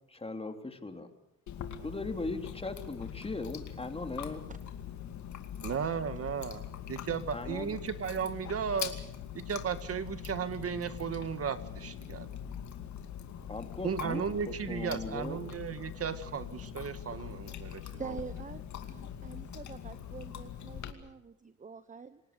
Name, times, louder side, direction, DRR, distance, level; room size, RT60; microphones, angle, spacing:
voice 1, 0.1-1.1 1.8-4.4 7.3-7.8 13.5-15.4, left 3 dB, 20° left, 6 dB, 3.2 m, -39 dB
Chewing mastication, 1.5-20.9, left 9 dB, 70° left, 2.5 m, -42 dB
voice 2, 5.6-6.6 6.9-8.9 9.3-12.3 13.8-18.1, right 7 dB, 50° right, 11 dB, 1.7 m, -35 dB
voice 3, 18.0-22.2, right 5 dB, 25° right, 12 dB, 1.0 m, -45 dB
28.0 x 18.5 x 6.8 m, 0.85 s
cardioid pair, 90°, 30 cm